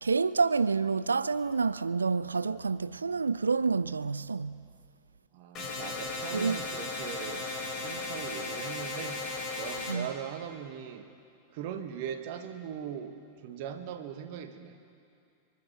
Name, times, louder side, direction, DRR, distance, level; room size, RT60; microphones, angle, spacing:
voice 1, 0.0-4.6 6.3-6.6 9.9-10.1, right 4 dB, 75° right, 0.3 m, -28 dB
voice 2, 5.3-7.5 7.8-9.2 9.5-11.1 11.5-14.8, right 8 dB, 50° right, 1.2 m, -40 dB
sound 1, 5.5-9.9, left 3 dB, 35° left, 3.7 m, -36 dB
29.5 x 10.5 x 4.3 m
figure-of-eight pair, 90°, 0 cm